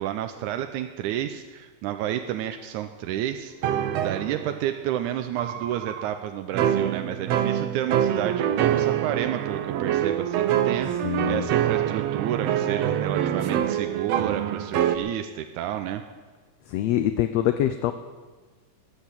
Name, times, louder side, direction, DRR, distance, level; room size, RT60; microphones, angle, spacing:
voice 1, 0.0-16.0, right 11 dB, 90° right, 7 dB, 2.1 m, -30 dB
sound 1, 3.6-4.7 5.4-6.1 6.5-15.0, right 10 dB, 70° right, 1.8 m, -25 dB
voice 2, 11.0-11.5 16.7-17.9, left 12 dB, 75° left, 9 dB, 1.6 m, -24 dB
20.5 x 8.2 x 7.3 m, 1.3 s
omnidirectional pair, 3.4 m